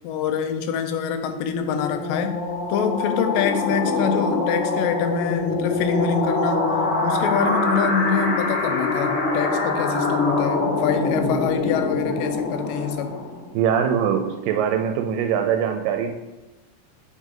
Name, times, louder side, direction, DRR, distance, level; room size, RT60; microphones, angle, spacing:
voice 1, 0.0-2.4 2.7-6.7 7.0-13.2, left 7 dB, 85° left, 8 dB, 2.2 m, -25 dB
sound 1, 0.9-13.5, left 3 dB, 65° left, 2.3 m, -24 dB
voice 2, 13.5-16.1, right 8 dB, 85° right, 5 dB, 2.2 m, -22 dB
7.7 x 5.1 x 3.7 m, 1.1 s
omnidirectional pair, 3.9 m